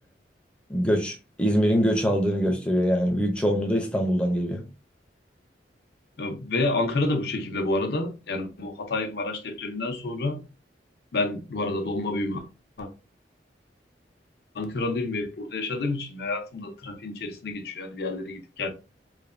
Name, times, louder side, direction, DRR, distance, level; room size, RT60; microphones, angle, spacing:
voice 1, 0.7-4.6, equal, 5° left, 0.5 m, -23 dB
voice 2, 6.2-10.4 11.1-12.4 12.8-12.9 14.5-18.7, left 2 dB, 60° left, 0.5 m, -29 dB
3.2 x 2.2 x 2.4 m
head